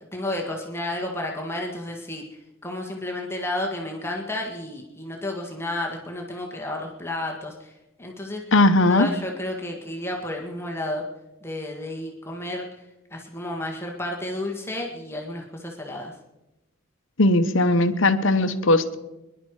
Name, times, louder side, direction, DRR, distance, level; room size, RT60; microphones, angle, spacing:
voice 1, 0.1-7.7 8.0-8.4 8.9-11.0 11.4-12.7 13.1-16.1, left 1 dB, 10° left, 0 dB, 1.7 m, -31 dB
voice 2, 8.5-9.1 17.2-19.0, left 2 dB, 70° left, 10 dB, 1.0 m, -18 dB
21.0 x 11.0 x 4.8 m, 0.96 s
head